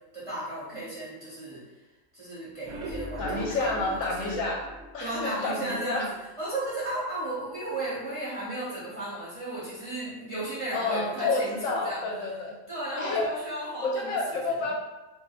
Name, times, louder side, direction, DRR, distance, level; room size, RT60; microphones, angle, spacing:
voice 1, 0.1-1.6 2.1-4.4 5.0-12.0 12.7-14.2 14.4-14.6, right 1 dB, 25° right, -9 dB, 1.0 m, -35 dB
sound 1, 2.5-5.7 6.1-6.2 6.5-6.6 7.0-7.1, right 1 dB, 85° right, 1.1 m, -39 dB
voice 2, 3.2-4.6 4.9-6.0 10.7-12.5 13.0-13.3 13.8-14.7, left 3 dB, 70° left, -1 dB, 0.9 m, -29 dB
2.6 x 2.1 x 4.0 m, 1.1 s
omnidirectional pair, 1.5 m